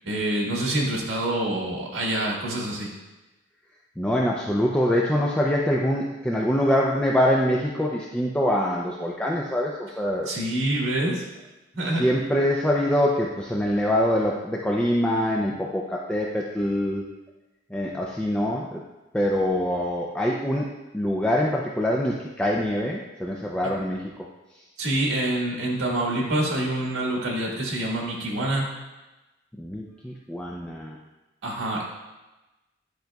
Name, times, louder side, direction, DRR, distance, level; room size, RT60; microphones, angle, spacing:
voice 1, 0.0-2.9 10.2-11.2 11.7-12.1 24.8-28.7 31.4-31.8, right 1 dB, 80° right, -2 dB, 1.5 m, -26 dB
voice 2, 4.0-10.3 11.9-17.0 17.7-18.8 19.1-24.1 29.6-31.0, equal, 5° left, -3 dB, 0.4 m, -24 dB
10.5 x 5.0 x 2.3 m, 1.1 s
head